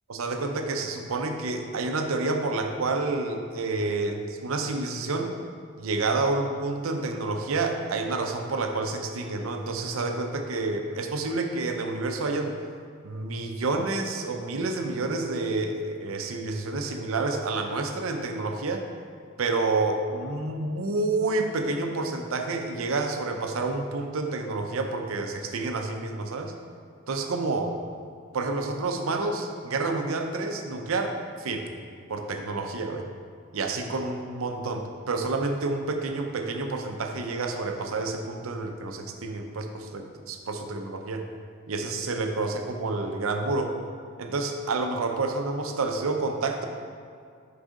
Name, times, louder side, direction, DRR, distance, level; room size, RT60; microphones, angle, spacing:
voice 1, 0.1-5.4 5.8-12.5 13.0-18.8 19.4-26.5 27.1-27.7 28.3-31.7 32.1-33.1 33.5-41.3 41.7-43.7 44.2-46.7, right 3 dB, 90° right, 5 dB, 0.6 m, -29 dB
6.3 x 4.8 x 3.7 m, 2.3 s
head